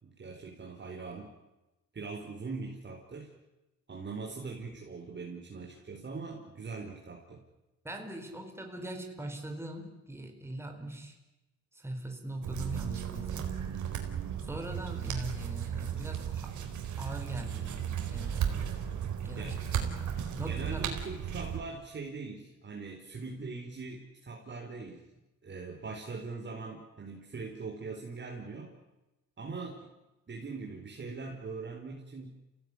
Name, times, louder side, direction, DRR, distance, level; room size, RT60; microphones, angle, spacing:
voice 1, 0.0-1.3 1.9-3.3 3.9-7.4 18.5-18.8 19.4-19.6 20.4-25.0 25.4-28.7 29.4-29.9 30.3-32.4, right 4 dB, 35° right, 0 dB, 4.5 m, -41 dB
voice 2, 7.8-11.2 11.7-13.7 14.4-16.6 17.0-17.8 18.1-18.8 19.2-21.0, right 1 dB, 10° right, 3 dB, 4.4 m, -41 dB
sound 1, 12.4-21.6, right 9 dB, 75° right, 4.3 m, -35 dB
28.0 x 17.5 x 9.8 m, 1.0 s
cardioid pair, 90°, 30 cm